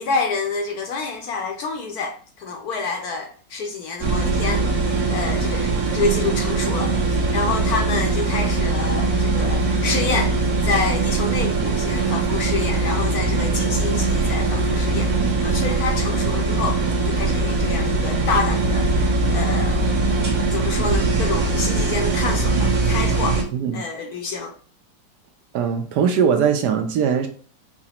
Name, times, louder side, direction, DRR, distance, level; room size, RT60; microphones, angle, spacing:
voice 1, 0.0-10.4 10.6-19.8 20.5-23.4 23.7-24.5, left 4 dB, 70° left, 1.0 m, -28 dB
sound 1, 4.0-23.4, right 3 dB, 55° right, 1.4 m, -21 dB
sound 2, 16.5-21.9, left 12 dB, 85° left, 0.7 m, -32 dB
voice 2, 23.5-23.8 25.5-27.3, right 7 dB, 70° right, 1.1 m, -20 dB
4.8 x 2.0 x 4.1 m
omnidirectional pair, 2.0 m